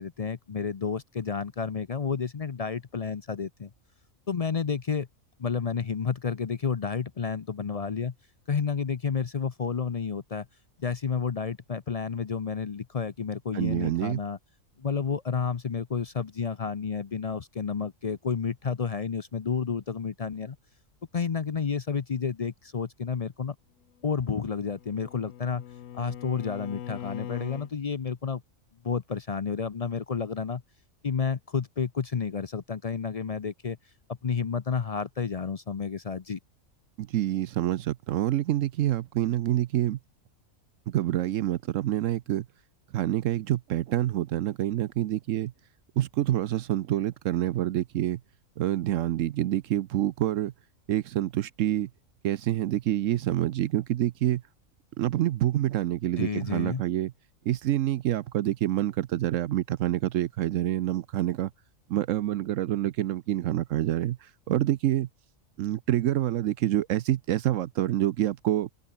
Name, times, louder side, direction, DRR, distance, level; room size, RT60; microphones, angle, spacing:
voice 1, 0.0-3.7 4.3-5.1 5.4-8.1 8.5-10.5 10.8-14.4 14.8-20.6 21.1-23.5 24.0-25.6 25.9-28.4 28.8-30.6 31.0-33.8 34.1-36.4 56.2-56.8, left 6 dB, 45° left, 0.5 m, -30 dB
voice 2, 13.5-14.2 37.0-40.0 40.9-42.5 42.9-45.5 46.0-48.2 48.6-50.5 50.9-51.9 52.2-54.4 55.0-57.1 57.4-61.5 61.9-65.1 65.6-68.7, right 13 dB, 75° right, 1.0 m, -27 dB
Bowed string instrument, 24.3-27.7, left 11 dB, 75° left, 1.2 m, -41 dB
omnidirectional pair, 1.4 m